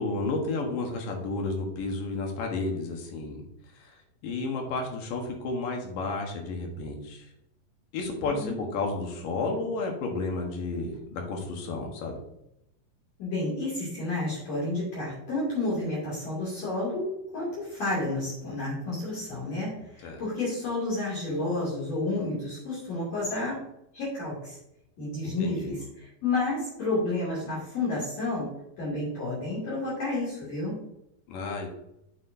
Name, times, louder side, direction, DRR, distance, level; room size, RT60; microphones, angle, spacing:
voice 1, 0.0-3.4 3.8-3.9 4.2-7.2 7.9-12.2 20.0-20.2 25.2-25.7 31.3-31.7, left 3 dB, 70° left, 1 dB, 2.9 m, -32 dB
voice 2, 13.2-23.6 23.9-24.6 25.0-28.5 28.8-30.8, left 2 dB, 45° left, -8 dB, 3.7 m, -31 dB
8.0 x 6.8 x 2.7 m, 0.81 s
omnidirectional pair, 4.2 m